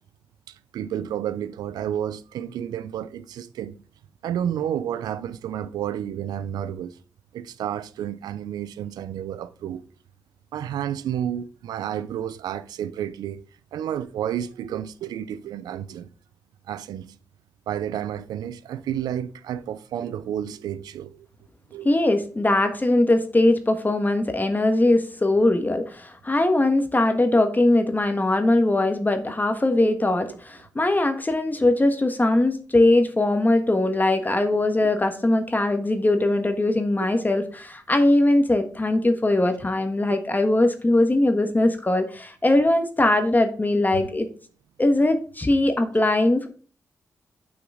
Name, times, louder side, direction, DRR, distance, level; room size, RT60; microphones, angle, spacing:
voice 1, 0.5-3.8 4.2-7.0 7.3-9.8 10.5-13.5 13.7-16.1 16.7-17.2 17.7-21.3 21.7-21.9 22.6-22.7 25.3-25.4 29.8-29.9 30.3-30.4 33.8-34.0 34.5-34.9 40.1-40.2, right 10 dB, 85° right, 0.4 m, -31 dB
voice 2, 21.8-44.3 44.8-46.5, left 2 dB, 25° left, 1.3 m, -21 dB
6.2 x 5.9 x 4.8 m
supercardioid pair, 45°, 7 cm